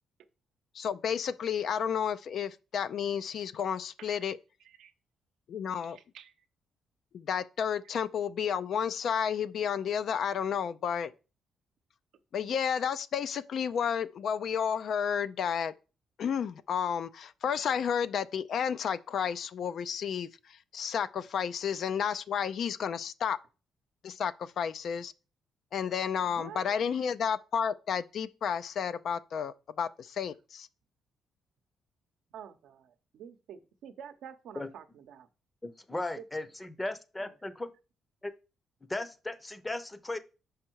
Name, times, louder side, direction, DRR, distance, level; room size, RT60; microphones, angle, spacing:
voice 1, 0.7-4.4 5.5-6.0 7.1-11.1 12.3-15.7 16.2-23.4 24.0-25.1 25.7-30.7, left 7 dB, 65° left, 0.4 m, -31 dB
voice 2, 4.0-4.3 4.6-4.9 5.8-6.3 26.2-26.8 32.3-35.3 35.9-36.3, right 8 dB, 80° right, 0.7 m, -49 dB
voice 3, 35.6-37.7 38.2-38.3 38.9-40.2, left 2 dB, 15° left, 0.7 m, -36 dB
5.4 x 4.9 x 4.5 m
cardioid pair, 90°, 0 cm